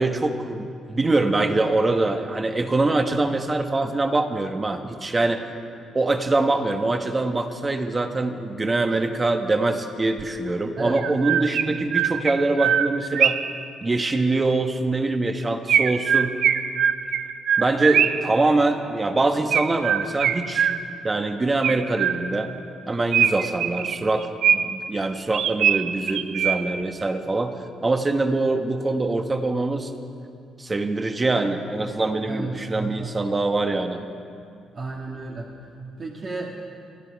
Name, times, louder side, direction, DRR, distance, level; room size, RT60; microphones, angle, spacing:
voice 1, 0.0-5.4 5.9-13.4 13.8-16.4 17.6-20.7 21.0-22.5 22.9-29.9 30.6-34.0, right 2 dB, 25° right, 6 dB, 1.3 m, -24 dB
Chirp tweet, 10.2-10.3 11.0-13.6 15.7-18.4 19.5-21.1 21.6-22.5 23.1-24.9 25.3-26.9, right 8 dB, 70° right, 0.6 m, -23 dB
voice 2, 10.8-11.1 32.3-33.1 34.7-35.5 36.0-36.5, right 3 dB, 45° right, -2 dB, 1.8 m, -32 dB
24.5 x 11.0 x 4.7 m, 2.4 s
cardioid pair, 90°, 0 cm